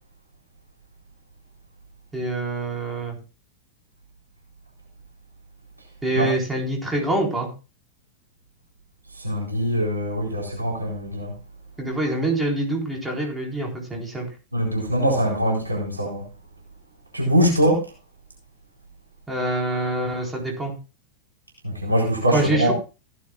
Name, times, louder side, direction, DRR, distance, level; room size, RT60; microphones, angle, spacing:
voice 1, 2.1-3.2 6.0-7.5 11.8-14.3 19.3-20.7 22.3-22.7, right 2 dB, 10° right, 3.9 m, -25 dB
voice 2, 9.2-11.3 14.5-16.2 17.1-17.9 21.6-22.7, equal, 85° right, 4.1 m, -22 dB
15.5 x 10.5 x 2.2 m
figure-of-eight pair, 90°, 0 cm